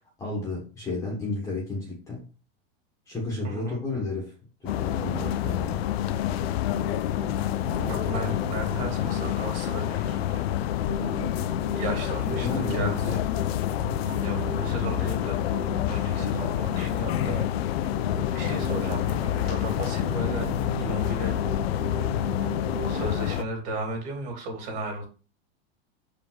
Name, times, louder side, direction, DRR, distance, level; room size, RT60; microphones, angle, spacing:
voice 1, 0.0-2.2 3.1-4.3 4.6-5.8 12.4-13.0, left 2 dB, 10° left, -3 dB, 1.3 m, -32 dB
voice 2, 3.4-3.8 7.8-10.5 11.7-13.2 14.2-15.4 15.9-17.6 18.3-20.5 20.8-21.3 22.9-25.1, right 2 dB, 40° right, 2 dB, 2.7 m, -35 dB
sound 1, 4.7-23.4, left 12 dB, 70° left, 0.6 m, -28 dB
sound 2, 5.0-23.2, right 5 dB, 80° right, 1.8 m, -39 dB
6.9 x 5.0 x 3.9 m, 0.36 s
supercardioid pair, 175°, 32 cm